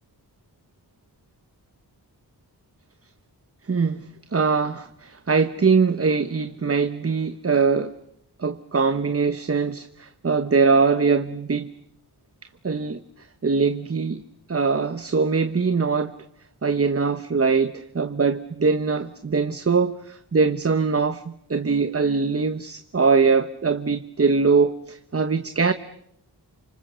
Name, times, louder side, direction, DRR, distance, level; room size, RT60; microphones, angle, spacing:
voice 1, 3.7-4.1 4.3-7.9 8.4-11.7 12.6-14.2 14.5-16.1 16.6-25.7, right 4 dB, 35° right, 1.1 m, -22 dB
29.5 x 26.0 x 6.9 m
wide cardioid pair, 125°, 41 cm